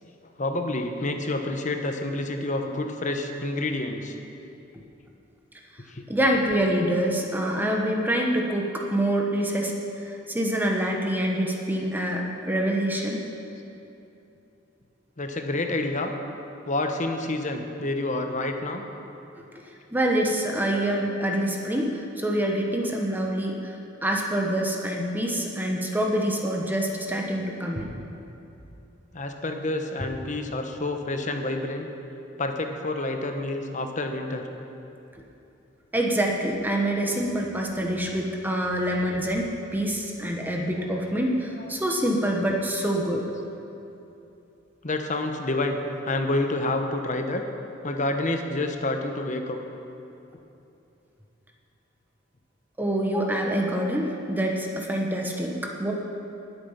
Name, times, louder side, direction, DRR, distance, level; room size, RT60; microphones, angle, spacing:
voice 1, 0.4-4.1 5.9-6.0 15.2-16.1 16.7-18.8 29.1-31.9 32.4-34.4 40.9-41.0 44.8-45.8 46.1-47.4 47.8-49.6, left 2 dB, 40° left, 5 dB, 1.1 m, -28 dB
voice 2, 6.1-9.7 10.0-13.2 19.5-19.6 19.9-23.8 24.0-27.9 35.9-43.2 52.8-55.9, right 1 dB, 10° right, 0 dB, 1.2 m, -26 dB
19.5 x 8.7 x 5.8 m, 2.9 s
head